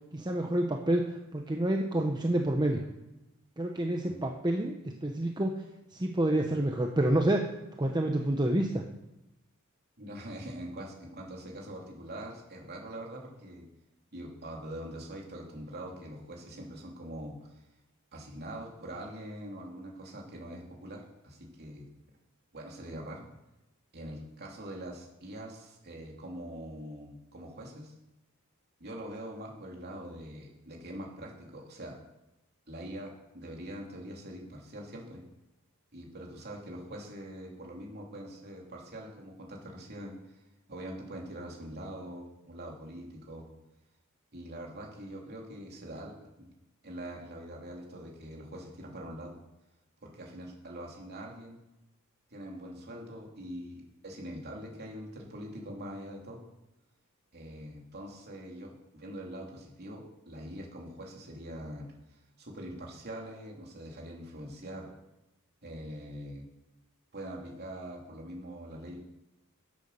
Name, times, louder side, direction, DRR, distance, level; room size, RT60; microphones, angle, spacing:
voice 1, 0.1-2.8 3.6-5.5 5.9-7.5 7.8-8.8, right 1 dB, 20° right, 2 dB, 0.8 m, -28 dB
voice 2, 10.0-13.6 14.1-17.6 18.1-21.9 22.5-23.3 23.9-27.9 28.8-31.9 32.7-35.2 35.9-40.4 40.7-43.4 44.3-46.5 46.8-49.3 50.0-51.6 52.3-56.4 57.3-64.9 65.6-66.5 67.1-69.0, right 1 dB, 50° right, -1 dB, 3.1 m, -43 dB
10.5 x 8.4 x 6.8 m, 0.95 s
head